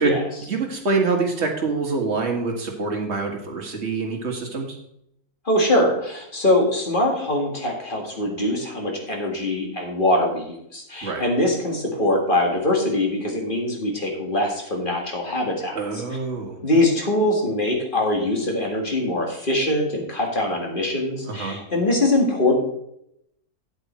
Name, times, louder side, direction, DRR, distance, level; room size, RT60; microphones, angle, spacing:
voice 1, 0.0-4.8 11.0-11.2 15.7-16.6 21.2-21.6, right 4 dB, 45° right, 2 dB, 1.9 m, -25 dB
voice 2, 5.5-16.0 16.6-22.6, left 1 dB, 35° left, 1 dB, 2.0 m, -23 dB
8.3 x 8.2 x 4.3 m, 0.77 s
omnidirectional pair, 1.7 m